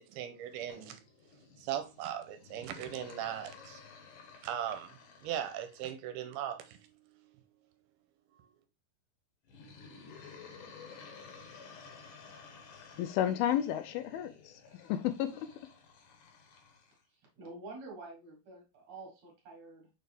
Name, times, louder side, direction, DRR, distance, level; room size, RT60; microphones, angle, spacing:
voice 1, 0.1-1.0 1.6-3.8 4.4-6.8 7.1-7.3 8.4-8.5, right 10 dB, 85° right, 2.6 m, -39 dB
sound 1, 0.7-5.9 9.4-17.0, left 5 dB, 65° left, 2.5 m, -53 dB
voice 2, 13.0-15.5, left 11 dB, 80° left, 2.3 m, -32 dB
voice 3, 17.1-19.9, right 2 dB, 50° right, 2.6 m, -48 dB
6.7 x 4.3 x 3.5 m
omnidirectional pair, 4.5 m